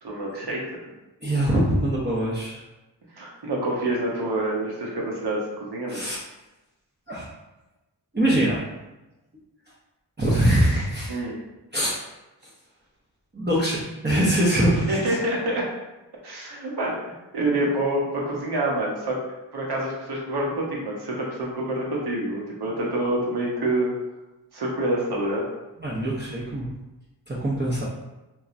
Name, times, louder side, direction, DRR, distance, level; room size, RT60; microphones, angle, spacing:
voice 1, 0.0-0.6 3.1-6.0 11.1-11.4 14.9-15.6 16.2-17.0 17.3-19.2 19.5-23.9 24.5-25.4, right 1 dB, 65° right, -2 dB, 0.9 m, -27 dB
voice 2, 1.2-2.6 5.9-6.2 7.1-7.3 8.1-8.6 10.2-11.2 11.7-12.0 13.3-15.2 25.8-26.7 27.3-27.8, right 1 dB, 25° right, -8 dB, 0.7 m, -23 dB
3.0 x 2.3 x 2.5 m, 1.0 s
cardioid pair, 45°, 43 cm